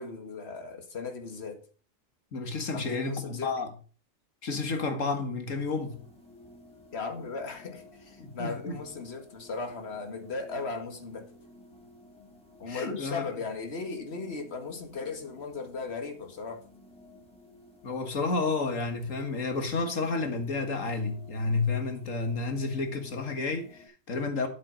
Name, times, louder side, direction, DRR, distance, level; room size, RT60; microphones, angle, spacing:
voice 1, 0.0-1.6 2.7-3.5 6.9-11.3 12.6-16.6, left 4 dB, 55° left, 2.0 m, -37 dB
voice 2, 2.3-3.7 4.4-6.0 8.2-8.8 12.7-13.2 17.8-24.5, left 3 dB, 90° left, 2.1 m, -31 dB
sound 1, 5.5-23.9, left 1 dB, 5° left, 3.9 m, -54 dB
10.0 x 7.6 x 5.2 m
omnidirectional pair, 1.3 m